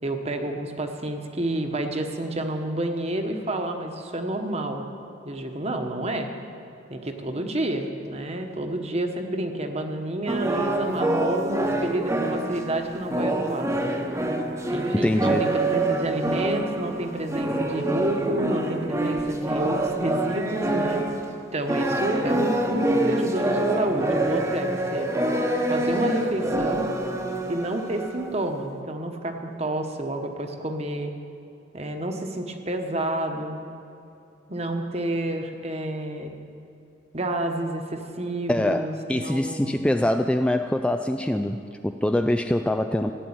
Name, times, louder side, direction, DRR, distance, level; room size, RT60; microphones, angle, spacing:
voice 1, 0.0-4.9 5.2-6.3 6.9-13.8 14.7-21.1 21.5-25.1 25.7-26.9 27.5-31.1 31.7-33.6 34.5-36.4 37.1-39.8, right 1 dB, 35° right, 5 dB, 1.2 m, -29 dB
sound 1, 10.3-21.3 21.7-28.5, right 1 dB, 15° right, 1.0 m, -26 dB
voice 2, 14.9-15.5 38.5-43.1, left 1 dB, 5° left, 7 dB, 0.3 m, -24 dB
15.0 x 9.2 x 8.8 m, 2.7 s
head